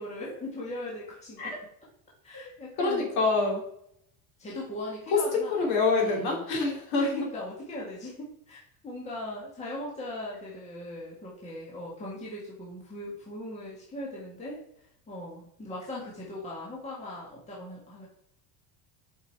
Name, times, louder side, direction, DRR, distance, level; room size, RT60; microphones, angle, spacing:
voice 1, 0.0-1.6 2.2-3.1 4.4-5.6 5.9-6.4 7.0-18.1, left 1 dB, 15° left, -5 dB, 1.7 m, -39 dB
voice 2, 2.8-3.6 5.1-7.1, left 3 dB, 50° left, -1 dB, 3.0 m, -26 dB
7.0 x 5.4 x 4.6 m, 0.70 s
cardioid pair, 170°, 47 cm